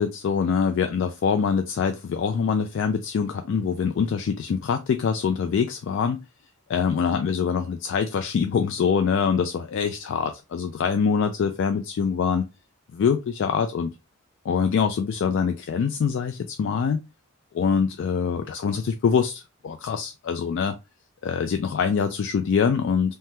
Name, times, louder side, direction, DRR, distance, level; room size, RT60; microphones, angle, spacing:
voice 1, 0.0-6.2 6.7-12.5 12.9-13.9 14.4-17.0 17.5-20.8 21.2-23.1, left 6 dB, 60° left, 7 dB, 0.3 m, -24 dB
3.2 x 2.2 x 2.7 m, 0.26 s
head